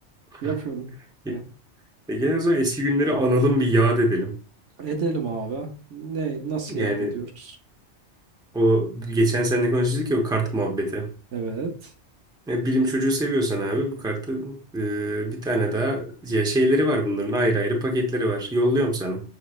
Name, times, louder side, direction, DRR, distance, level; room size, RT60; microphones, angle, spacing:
voice 1, 0.4-0.9 1.3-1.4 4.8-7.6 11.3-11.9, right 4 dB, 80° right, 4 dB, 1.2 m, -30 dB
voice 2, 2.1-4.3 6.7-7.2 8.5-11.1 12.5-19.2, equal, 5° right, 1 dB, 0.7 m, -23 dB
6.4 x 3.1 x 2.4 m, 0.37 s
omnidirectional pair, 1.2 m